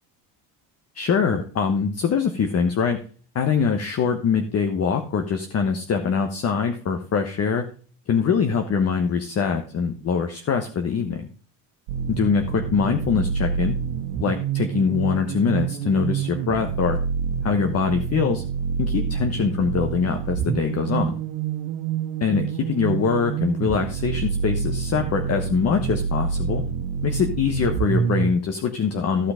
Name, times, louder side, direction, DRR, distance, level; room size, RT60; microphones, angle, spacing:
voice 1, 0.9-3.0 3.3-7.6 8.1-11.3 12.1-13.8 14.2-17.0 17.4-18.4 18.8-21.2 22.2-26.6 27.0-29.3, left 6 dB, 35° left, 6 dB, 1.2 m, -23 dB
sound 1, 11.9-28.3, right 7 dB, 75° right, 1.3 m, -27 dB
14.5 x 5.8 x 5.0 m, 0.40 s
cardioid pair, 120°, 45 cm